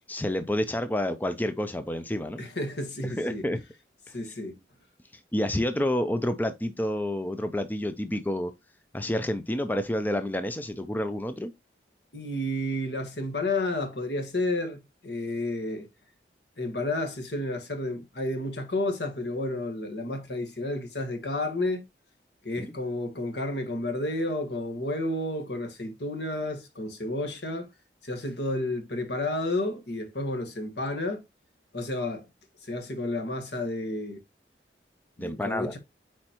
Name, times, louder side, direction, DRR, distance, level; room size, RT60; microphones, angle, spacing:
voice 1, 0.1-2.4 3.0-3.6 4.1-4.2 5.3-8.5 8.9-11.5 22.6-22.7 35.2-35.8, left 1 dB, 10° left, 0.4 m, -29 dB
voice 2, 2.4-3.5 4.1-4.6 12.1-15.9 16.6-21.8 22.4-27.7 28.0-31.2 31.7-32.2 32.6-34.2 35.2-35.8, left 1 dB, 70° left, 1.6 m, -31 dB
8.8 x 4.4 x 3.0 m
head